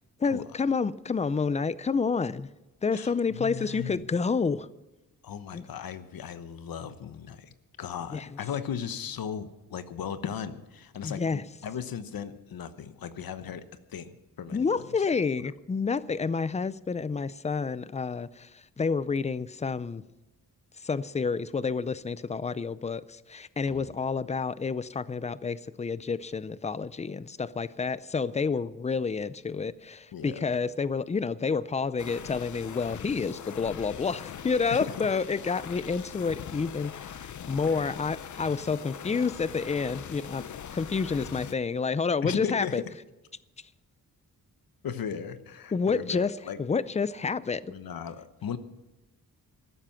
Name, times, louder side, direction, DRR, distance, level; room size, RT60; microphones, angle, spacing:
voice 1, 0.2-2.5 2.8-4.7 5.5-5.7 8.1-8.3 11.0-11.4 14.5-20.0 20.8-40.4 40.7-42.8 45.7-47.6, left 5 dB, 20° left, 0.4 m, -29 dB
voice 2, 2.9-4.0 5.2-13.6 13.9-14.8 15.4-15.5 23.7-23.9 30.1-30.5 34.7-35.1 37.7-37.8 42.2-42.9 44.8-46.6 47.7-48.6, left 8 dB, 75° left, 1.0 m, -37 dB
sound 1, 32.0-41.5, left 9 dB, 55° left, 0.7 m, -42 dB
14.5 x 12.5 x 5.8 m
wide cardioid pair, 155°, 35 cm